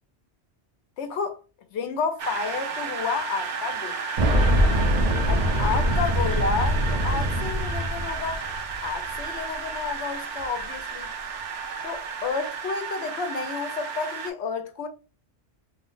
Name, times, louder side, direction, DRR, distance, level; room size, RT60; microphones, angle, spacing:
voice 1, 1.0-1.4 1.7-4.1 5.3-8.4 8.8-11.1 11.8-14.9, left 5 dB, 75° left, 0.8 m, -30 dB
sound 1, 2.2-14.3, right 5 dB, 85° right, 1.0 m, -33 dB
Boom, 4.2-8.9 9.2-9.3 10.4-10.5, equal, 45° right, 0.5 m, -23 dB
2.7 x 2.0 x 3.8 m
omnidirectional pair, 1.2 m